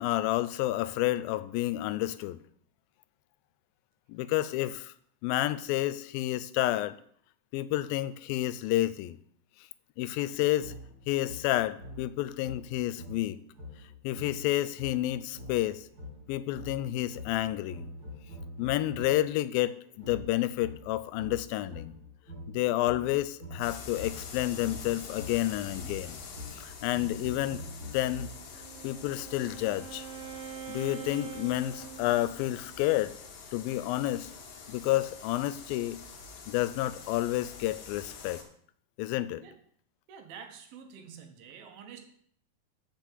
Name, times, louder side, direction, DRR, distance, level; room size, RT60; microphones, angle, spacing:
voice 1, 0.0-2.4 4.1-4.9 5.2-7.0 7.5-9.2 10.0-10.7 11.1-13.4 14.0-15.9 16.3-17.9 18.6-22.0 22.5-26.2 26.6-27.6 27.9-28.3 28.8-30.1 30.7-33.1 33.5-34.3 34.7-36.0 36.5-38.4 39.0-39.4, left 15 dB, 85° left, 15 dB, 2.3 m, -30 dB
sound 1, 10.6-19.3 20.0-28.6, left 1 dB, 35° right, 3.9 m, -45 dB
sound 2, 23.6-38.4, left 5 dB, 65° left, 2.7 m, -46 dB
Wind instrument woodwind instrument, 28.4-32.7, right 10 dB, 60° right, 1.4 m, -45 dB
voice 2, 40.1-42.0, right 7 dB, 85° right, 5 dB, 3.0 m, -48 dB
7.1 x 6.1 x 7.5 m, 0.63 s
omnidirectional pair, 4.1 m